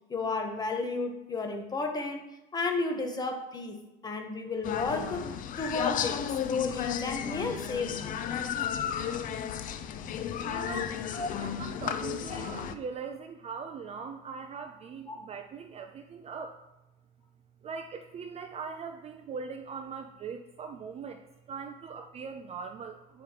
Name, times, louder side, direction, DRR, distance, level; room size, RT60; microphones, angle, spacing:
voice 1, 0.1-2.2 2.5-8.1 11.1-11.3 15.1-15.2, left 3 dB, 20° left, 3 dB, 1.1 m, -33 dB
sound 1, 4.6-12.7, left 9 dB, 40° left, 0.5 m, -33 dB
voice 2, 10.4-11.0 11.4-16.6 17.6-23.2, right 5 dB, 30° right, 6 dB, 0.4 m, -41 dB
8.4 x 5.1 x 2.9 m, 0.96 s
cardioid pair, 130°, 21 cm